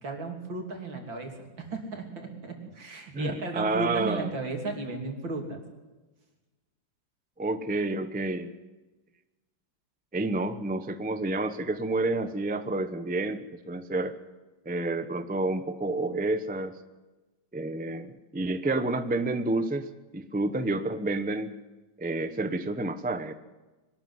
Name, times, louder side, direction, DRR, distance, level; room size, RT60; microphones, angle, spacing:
voice 1, 0.0-5.6, right 3 dB, 70° right, 2 dB, 3.8 m, -35 dB
voice 2, 3.1-4.3 7.4-8.5 10.1-14.2 14.6-16.8 17.5-19.9 20.1-21.5 22.0-23.3, right 2 dB, 15° right, 10 dB, 0.3 m, -29 dB
22.0 x 13.0 x 9.7 m, 1.2 s
omnidirectional pair, 2.1 m